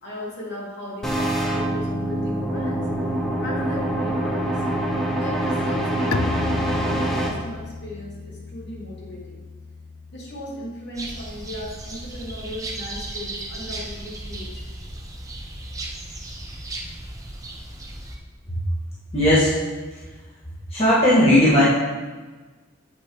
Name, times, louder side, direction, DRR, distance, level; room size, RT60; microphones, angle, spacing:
voice 1, 0.0-2.9 3.4-4.4 5.2-9.4 10.1-14.8, equal, 50° left, -5 dB, 2.7 m, -36 dB
sound 1, 1.0-7.3, right 1 dB, ahead, 1.2 m, -25 dB
Bowed string instrument, 6.1-11.7, left 4 dB, 75° left, 0.4 m, -34 dB
sound 2, 10.9-18.2, right 1 dB, 15° right, 0.9 m, -35 dB
voice 2, 19.1-19.6 20.7-21.6, left 1 dB, 30° left, -10 dB, 2.0 m, -16 dB
8.6 x 6.4 x 5.0 m, 1.3 s
head